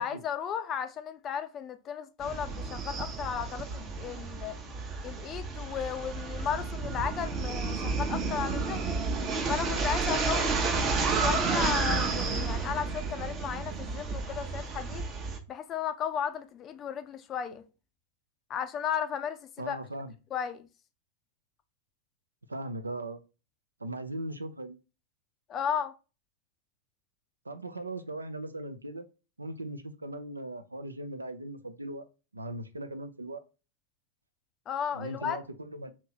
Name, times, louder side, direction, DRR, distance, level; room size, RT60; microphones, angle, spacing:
voice 1, 0.0-4.6 5.0-8.9 9.5-15.1 15.5-17.7 18.5-19.8 20.3-20.7 25.5-25.9 34.7-35.4, left 8 dB, 30° left, 0.4 m, -34 dB
sound 1, 2.2-15.4, right 4 dB, 30° right, 0.6 m, -31 dB
voice 2, 19.6-20.1 22.5-23.2 23.8-24.8 27.5-29.0 29.4-32.0 32.3-33.4 34.9-35.9, right 1 dB, 80° right, 0.4 m, -38 dB
2.9 x 2.7 x 4.1 m
figure-of-eight pair, 90°, 0 cm